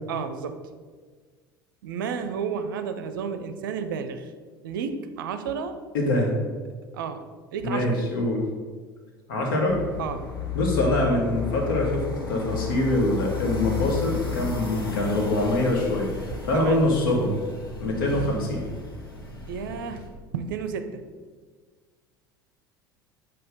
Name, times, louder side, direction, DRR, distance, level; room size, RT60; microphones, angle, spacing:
voice 1, 0.1-0.7 1.8-4.3 4.6-5.8 6.9-8.0 10.0-10.3 16.5-16.8 19.5-20.0 20.3-21.0, right 6 dB, 65° right, 10 dB, 0.5 m, -32 dB
voice 2, 5.9-6.3 7.6-8.4 9.3-9.8 10.5-16.1 16.5-17.4 17.8-18.6, left 1 dB, 65° left, -1 dB, 1.6 m, -24 dB
sound 1, 9.7-20.1, left 6 dB, 85° left, 1.1 m, -33 dB
8.0 x 2.9 x 5.1 m, 1.5 s
figure-of-eight pair, 70°, 12 cm